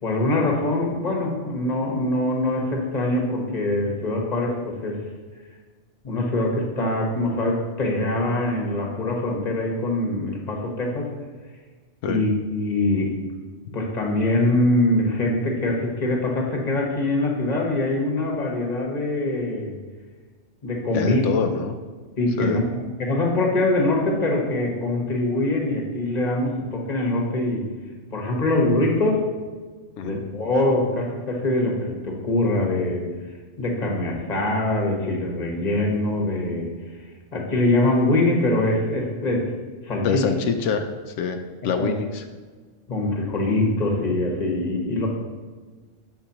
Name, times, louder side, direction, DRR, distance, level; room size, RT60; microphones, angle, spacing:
voice 1, 0.0-5.0 6.0-11.1 12.1-13.1 13.7-19.8 20.6-21.3 22.2-27.7 28.1-29.3 30.0-33.0 33.6-36.7 37.3-39.5 39.8-40.3 41.8-41.9 42.9-45.1, left 2 dB, 35° left, 0 dB, 1.3 m, -23 dB
voice 2, 20.9-21.7 22.4-22.6 30.0-30.3 40.0-41.4 41.6-42.3, left 6 dB, 90° left, 6 dB, 0.9 m, -25 dB
12.5 x 4.6 x 2.9 m, 1.4 s
omnidirectional pair, 1.2 m